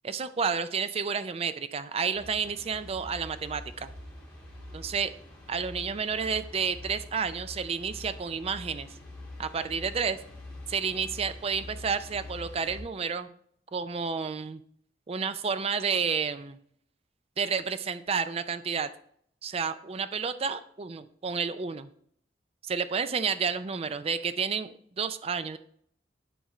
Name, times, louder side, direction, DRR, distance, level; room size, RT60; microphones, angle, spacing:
voice 1, 0.0-3.9 4.7-5.1 5.5-8.9 9.4-10.2 10.7-13.3 13.7-14.6 15.1-16.6 17.4-18.9 19.4-21.9 22.7-25.6, right 6 dB, 35° right, 12 dB, 0.4 m, -30 dB
sound 1, 2.1-12.8, left 2 dB, 5° left, 1.8 m, -45 dB
10.0 x 3.7 x 4.2 m, 0.64 s
head